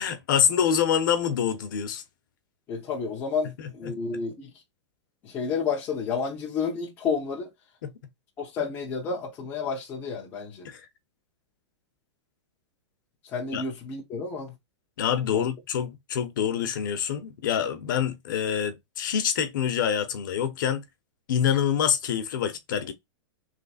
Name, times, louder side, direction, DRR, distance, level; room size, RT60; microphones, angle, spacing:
voice 1, 0.0-2.0 3.6-3.9 7.8-7.9 10.6-10.8 13.5-13.6 15.0-20.8 21.3-22.9, left 8 dB, 45° left, 0.8 m, -26 dB
voice 2, 2.7-4.5 5.2-7.5 8.4-10.7 13.3-14.5 15.3-15.5, left 5 dB, 15° left, 0.5 m, -30 dB
3.3 x 3.2 x 4.0 m
supercardioid pair, 180°, 15 cm